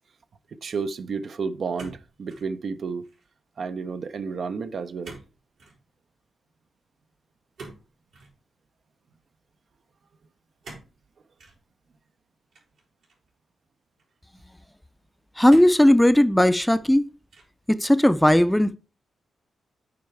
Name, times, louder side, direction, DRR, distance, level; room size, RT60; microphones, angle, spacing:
voice 1, 0.5-3.0 3.6-5.2, right 5 dB, 60° right, 0.6 m, -31 dB
sound 1, 1.8-2.5 2.9-3.3 5.0-5.3 5.6-5.8 7.6-8.3 10.6-10.9 11.4-11.6 12.5-13.3 14.0-14.1 15.5-15.9 16.5-16.9 17.3-17.7, right 3 dB, 90° right, 5.2 m, -45 dB
voice 2, 15.4-17.0 17.7-18.8, left 1 dB, 5° left, 0.5 m, -17 dB
8.5 x 4.7 x 4.6 m
cardioid pair, 70°, 0 cm